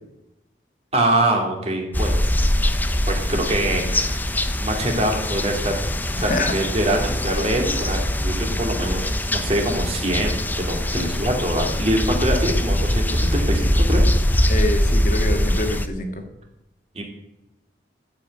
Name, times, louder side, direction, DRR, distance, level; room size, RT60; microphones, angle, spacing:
voice 1, 0.9-2.2 3.1-4.2 4.6-5.8 6.2-14.0 16.9-17.0, right 1 dB, 35° right, 1 dB, 2.5 m, -24 dB
sound 1, 1.9-15.9, left 1 dB, 10° left, 0.6 m, -22 dB
voice 2, 6.2-6.5 11.0-11.1 14.5-16.2, left 1 dB, 45° left, 5 dB, 1.7 m, -26 dB
14.0 x 5.6 x 8.6 m, 0.90 s
head